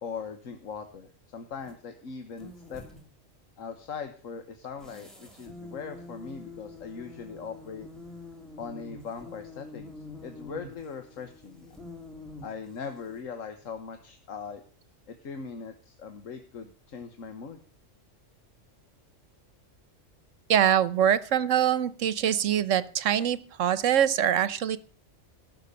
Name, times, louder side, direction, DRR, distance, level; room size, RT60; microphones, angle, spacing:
voice 1, 0.0-2.8 3.6-7.9 8.6-9.9 10.2-11.7 12.4-14.6 15.1-17.6, left 5 dB, 80° left, 7 dB, 1.6 m, -40 dB
sound 1, 1.6-1.8 2.3-3.1 4.8-13.2, left 2 dB, ahead, 3.4 m, -46 dB
voice 2, 20.5-24.8, right 9 dB, 75° right, 16 dB, 1.2 m, -24 dB
17.0 x 6.7 x 6.8 m, 0.40 s
omnidirectional pair, 1.3 m